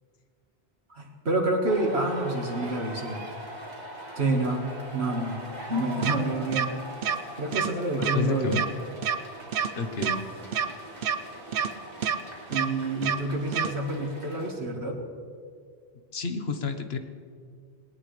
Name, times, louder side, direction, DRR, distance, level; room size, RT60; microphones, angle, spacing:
voice 1, 0.9-3.2 4.2-4.6 4.9-5.4 5.7-6.7 7.1-8.6 12.5-15.0, right 2 dB, 80° right, 0 dB, 2.0 m, -28 dB
sound 1, 1.7-14.5, right 1 dB, 40° right, 3.0 m, -42 dB
sound 2, 6.0-6.2 6.5-6.7 7.0-7.2 7.5-7.7 8.0-8.2 8.5-8.7 9.0-9.2 9.5-9.7 10.0-10.2 10.5-10.7 11.0-11.2 11.5-11.7 12.0-12.2 12.5-12.7 13.0-13.2 13.5-13.7, right 8 dB, 60° right, 0.9 m, -26 dB
voice 2, 8.0-8.6 9.8-10.2 16.1-17.0, left 4 dB, 75° left, 7 dB, 1.4 m, -30 dB
20.0 x 18.5 x 3.3 m, 2.1 s
omnidirectional pair, 1.1 m